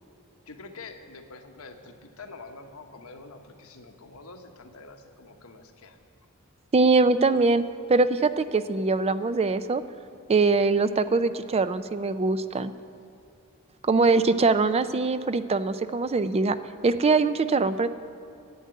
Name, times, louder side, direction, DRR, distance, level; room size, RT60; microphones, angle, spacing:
voice 1, 0.5-6.0, left 3 dB, 80° left, 4 dB, 1.2 m, -46 dB
voice 2, 6.7-7.6 7.9-9.8 10.3-12.7 13.8-16.6 16.8-17.9, right 3 dB, 30° right, 12 dB, 0.4 m, -22 dB
11.0 x 8.8 x 9.4 m, 2.7 s
head